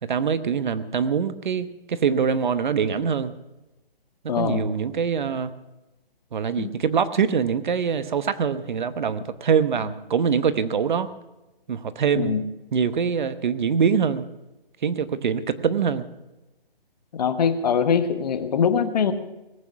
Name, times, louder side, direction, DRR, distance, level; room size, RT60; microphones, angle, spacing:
voice 1, 0.0-3.3 4.4-5.5 6.3-11.1 11.7-12.4 12.7-14.3 14.8-16.0, right 6 dB, 55° right, 13 dB, 1.0 m, -24 dB
voice 2, 4.3-4.6 6.6-6.7 12.1-12.4 17.1-19.1, left 7 dB, 45° left, 10 dB, 1.3 m, -22 dB
19.0 x 8.8 x 6.9 m, 1.0 s
hypercardioid pair, 150°, 29 cm